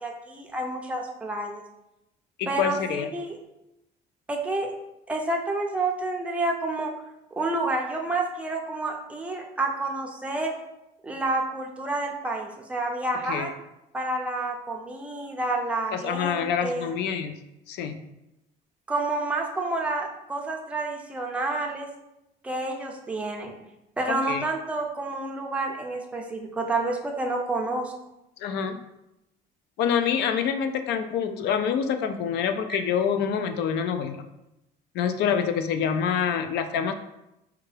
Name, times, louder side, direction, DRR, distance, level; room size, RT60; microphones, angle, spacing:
voice 1, 0.0-1.6 2.5-3.4 4.3-4.7 5.1-6.9 7.4-10.6 11.0-13.5 13.9-16.9 18.9-21.9 22.4-23.5 24.0-27.9 32.7-32.8, right 2 dB, 5° right, 0 dB, 0.4 m, -29 dB
voice 2, 2.4-3.1 13.3-13.5 15.9-17.4 17.7-18.0 24.1-24.5 28.4-28.8 29.8-34.2 34.9-36.9, left 7 dB, 70° left, 8 dB, 0.4 m, -26 dB
4.7 x 2.2 x 3.2 m, 0.89 s
cardioid pair, 145°, 18 cm